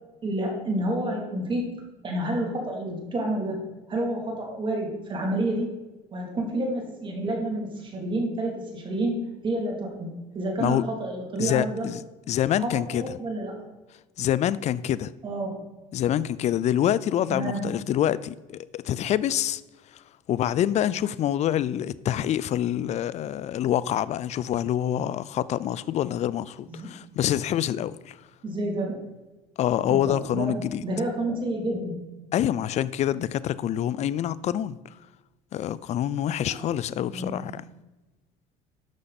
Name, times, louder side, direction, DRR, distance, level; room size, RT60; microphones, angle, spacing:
voice 1, 0.2-1.7 2.0-5.7 6.1-11.9 12.6-13.7 15.2-15.6 17.3-17.6 26.7-26.9 28.4-29.0 29.9-32.0 36.5-36.6 37.1-37.3, right 1 dB, 30° right, 2.9 m, -29 dB
voice 2, 11.4-12.0 12.3-13.2 14.2-15.1 15.9-19.6 19.9-20.0 20.3-28.2 29.6-30.8 32.3-34.8 35.5-37.6, left 11 dB, 45° left, 0.5 m, -26 dB
11.5 x 6.5 x 4.2 m
supercardioid pair, 105°, 16 cm